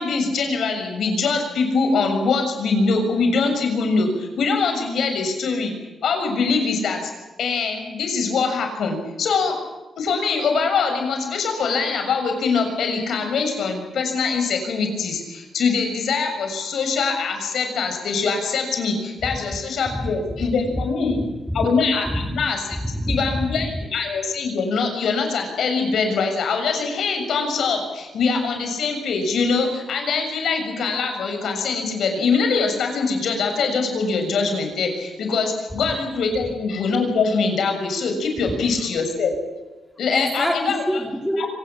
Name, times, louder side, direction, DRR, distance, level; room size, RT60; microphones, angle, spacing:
voice 1, 0.0-5.7 6.0-7.1 7.4-9.5 10.0-21.2 21.5-22.6 23.1-39.3 40.0-40.8 41.4-41.5, left 4 dB, 75° left, 6.8 m, -23 dB
voice 2, 19.9-20.8 21.1-21.7 22.0-22.4 22.7-23.7 35.7-35.9 40.1-41.4, equal, ahead, 2.5 m, -27 dB
25.5 x 19.0 x 8.9 m
wide cardioid pair, 140°, 0 cm